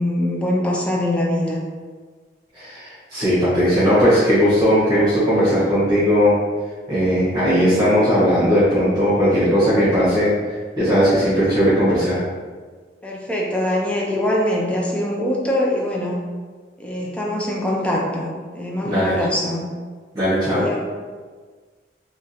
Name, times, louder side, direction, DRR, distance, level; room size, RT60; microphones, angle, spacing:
voice 1, 0.0-1.6 13.0-16.3 16.8-19.7 20.4-20.8, left 1 dB, 5° left, -3 dB, 0.5 m, -23 dB
voice 2, 2.5-6.4 6.9-12.2 18.8-19.1 20.1-20.6, equal, 25° right, -13 dB, 1.5 m, -18 dB
3.6 x 3.0 x 2.9 m, 1.5 s
head